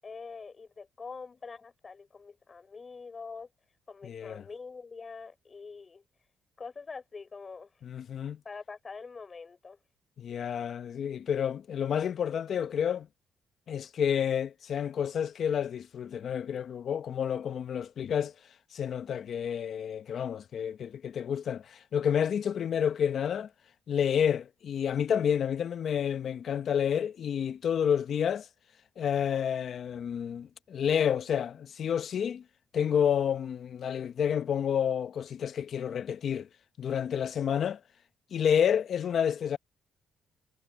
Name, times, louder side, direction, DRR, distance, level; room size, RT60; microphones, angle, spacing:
voice 1, 0.0-3.5 3.9-6.0 6.6-7.7 8.4-9.8, left 4 dB, 35° left, 6.6 m, -44 dB
voice 2, 4.0-4.4 7.8-8.4 10.2-13.1 13.7-18.3 18.7-23.5 23.9-28.5 29.0-32.4 32.7-36.5 36.8-37.8 38.3-39.6, left 8 dB, 60° left, 0.9 m, -29 dB
cardioid pair, 90°, 0 cm